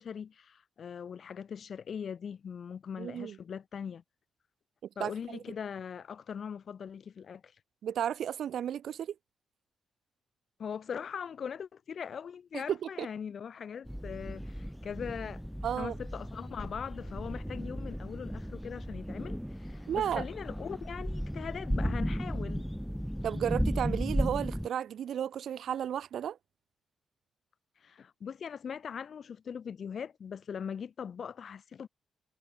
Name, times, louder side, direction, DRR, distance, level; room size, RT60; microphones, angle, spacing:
voice 1, 0.0-4.0 5.0-7.5 10.6-15.4 15.8-22.6 27.8-31.9, left 7 dB, 45° left, 3.9 m, -41 dB
voice 2, 3.0-3.4 5.0-5.4 7.8-9.1 12.5-13.1 15.6-16.0 19.9-20.2 23.2-26.4, right 9 dB, 65° right, 2.1 m, -33 dB
sound 1, 13.9-24.7, equal, ahead, 1.8 m, -35 dB
wide cardioid pair, 160°, 0 cm